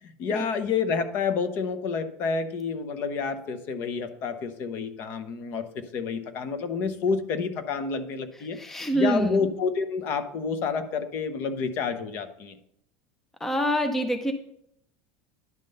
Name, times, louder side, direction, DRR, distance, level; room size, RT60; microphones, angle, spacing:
voice 1, 0.0-8.6 8.9-12.6, left 5 dB, 45° left, 10 dB, 0.8 m, -29 dB
voice 2, 8.5-9.4 13.4-14.3, equal, 5° left, 7 dB, 0.5 m, -26 dB
10.5 x 3.7 x 6.6 m, 0.73 s
cardioid pair, 160°, 5 cm